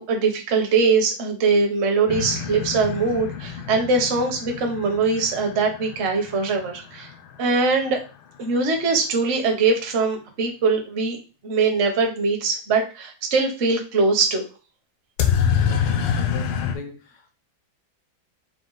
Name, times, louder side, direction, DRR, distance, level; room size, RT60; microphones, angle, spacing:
voice 1, 0.0-7.1 7.4-8.0 8.4-11.2 11.4-14.4, right 4 dB, 45° right, 2 dB, 0.9 m, -22 dB
sound 1, 2.1-7.8 15.2-16.8, left 8 dB, 85° left, 1.5 m, -27 dB
voice 2, 15.4-17.3, left 3 dB, 70° left, 4 dB, 0.7 m, -39 dB
4.9 x 2.3 x 3.9 m, 0.33 s
omnidirectional pair, 2.2 m